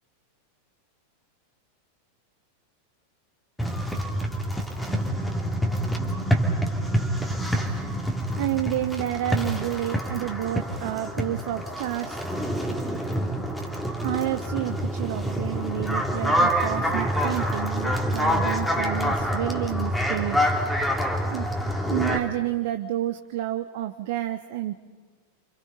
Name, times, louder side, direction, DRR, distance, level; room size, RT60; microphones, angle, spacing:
sound 1, 3.6-22.2, equal, 5° left, 2.8 m, -26 dB
voice 1, 8.4-12.2 14.0-20.5 21.3-21.5 21.9-24.7, right 14 dB, 50° right, 8 dB, 1.0 m, -30 dB
29.5 x 26.0 x 5.5 m, 1.5 s
figure-of-eight pair, 90°, 0 cm